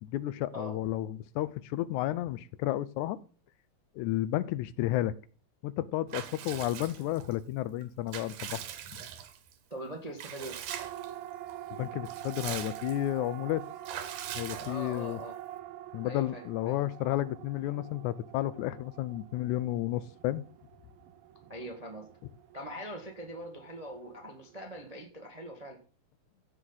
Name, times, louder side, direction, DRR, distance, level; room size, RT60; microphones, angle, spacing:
voice 1, 0.0-3.2 4.0-5.1 5.6-8.6 11.8-13.6 14.4-15.2 15.9-20.4, left 14 dB, 80° left, 2.0 m, -32 dB
Water / Bathtub (filling or washing) / Liquid, 6.1-7.3 7.8-9.5 10.2-11.1 11.5-11.6 11.9-13.1 13.8-15.1, right 10 dB, 90° right, 2.6 m, -42 dB
voice 2, 9.7-10.6 14.6-15.4 16.0-16.9 21.5-22.1 22.5-25.8, equal, 30° right, 0.7 m, -42 dB
Siren, 10.7-25.0, right 13 dB, 70° right, 1.4 m, -46 dB
15.5 x 6.3 x 4.0 m
omnidirectional pair, 3.5 m